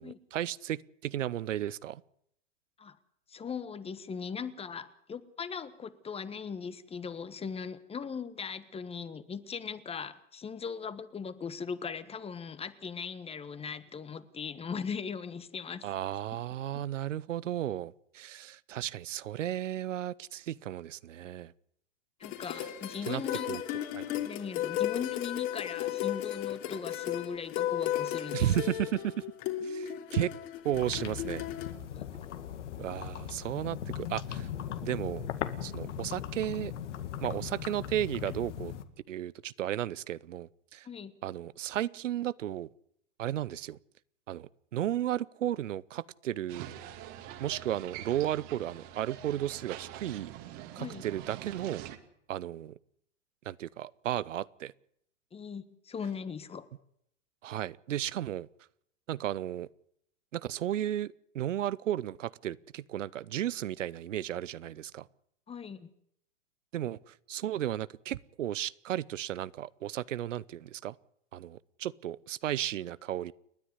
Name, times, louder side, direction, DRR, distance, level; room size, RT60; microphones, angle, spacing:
voice 1, 0.0-2.0 15.8-21.5 22.6-22.7 23.1-23.2 23.5-23.6 23.9-24.3 28.3-29.3 29.6-30.3 30.6-31.5 32.8-34.5 34.8-35.3 35.6-36.7 37.2-38.7 39.1-40.9 41.2-42.7 43.2-43.8 44.3-46.7 47.4-50.3 50.8-51.8 52.3-52.8 53.4-54.7 57.4-58.5 59.1-59.7 60.3-65.1 66.7-71.0 71.3-73.3, right 12 dB, 80° right, 0.7 m, -34 dB
voice 2, 3.3-15.9 16.7-16.8 22.2-23.6 24.2-28.5 31.9-32.1 40.8-41.1 50.8-51.0 55.3-56.7 65.5-65.9, left 6 dB, 15° left, 1.3 m, -39 dB
sound 1, 22.2-31.7, left 12 dB, 45° left, 3.1 m, -35 dB
sound 2, 30.7-38.8, left 9 dB, 70° left, 2.0 m, -39 dB
sound 3, 46.5-52.0, right 12 dB, 45° right, 2.4 m, -45 dB
29.5 x 10.0 x 9.5 m
hypercardioid pair, 115°, 37 cm